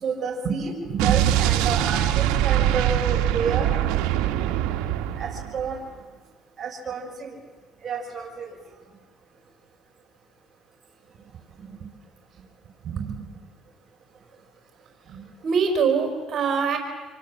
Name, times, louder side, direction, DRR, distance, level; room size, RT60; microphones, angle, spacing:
voice 1, 0.0-0.7 1.0-3.7 5.2-5.8 6.6-7.4 7.8-8.5, right 5 dB, 30° right, -2 dB, 6.9 m, -30 dB
voice 2, 0.8-1.5 11.6-11.9 12.3-12.4 12.8-13.4 15.0-16.8, right 6 dB, 50° right, 4 dB, 5.3 m, -26 dB
Explosion, 1.0-5.8, right 12 dB, 85° right, 1.5 m, -23 dB
27.0 x 24.0 x 7.7 m, 1.4 s
cardioid pair, 100°, 0 cm